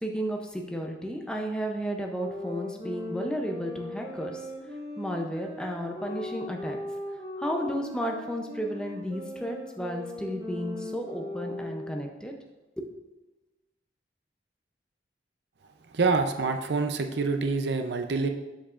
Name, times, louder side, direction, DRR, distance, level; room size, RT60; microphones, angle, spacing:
voice 1, 0.0-4.5 5.0-6.8 7.4-12.3 12.8-12.9, equal, 5° left, 2 dB, 0.5 m, -33 dB
sound 1, 2.1-12.1, left 1 dB, 25° right, 1.7 m, -39 dB
voice 2, 15.9-18.3, right 4 dB, 75° right, 6 dB, 0.6 m, -26 dB
7.2 x 7.2 x 2.5 m, 1.1 s
head